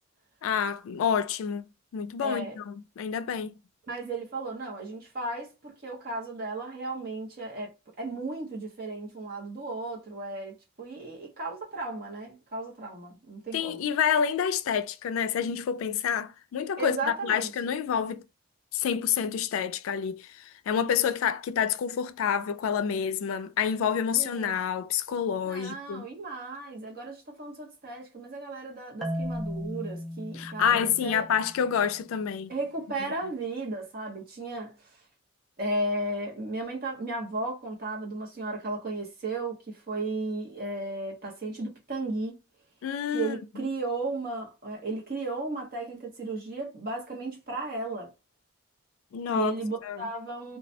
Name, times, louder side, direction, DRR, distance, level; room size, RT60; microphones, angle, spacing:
voice 1, 0.4-1.7 1.9-3.5 13.5-18.2 18.7-26.1 30.3-32.5 42.8-43.4 49.1-49.5 49.8-50.1, left 8 dB, 85° left, 0.3 m, -28 dB
voice 2, 2.2-2.6 3.9-7.7 8.0-13.8 16.8-17.5 24.1-24.5 25.4-31.2 32.5-34.7 35.6-42.4 43.1-48.1 49.3-50.6, right 2 dB, 45° right, 0.8 m, -35 dB
Marimba xylophone, 29.0-32.0, equal, ahead, 0.3 m, -36 dB
2.3 x 2.1 x 2.6 m
head